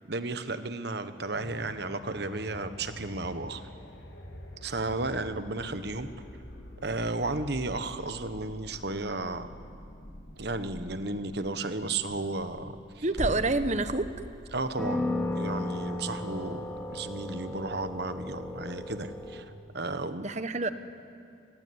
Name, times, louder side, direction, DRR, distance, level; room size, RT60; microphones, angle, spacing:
voice 1, 0.1-3.6 4.6-6.1 6.8-9.5 10.4-13.0 14.5-15.1 15.4-20.3, right 2 dB, 55° right, 10 dB, 1.4 m, -33 dB
sound 1, 1.3-15.0 15.5-15.6, equal, 65° left, 3.4 m, -47 dB
voice 2, 13.0-14.1 20.2-20.7, right 2 dB, 35° right, 11 dB, 1.1 m, -27 dB
sound 2, 13.2-13.7 14.2-14.3 14.8-19.4, left 1 dB, 5° left, 2.8 m, -34 dB
27.5 x 22.0 x 9.7 m, 2.4 s
head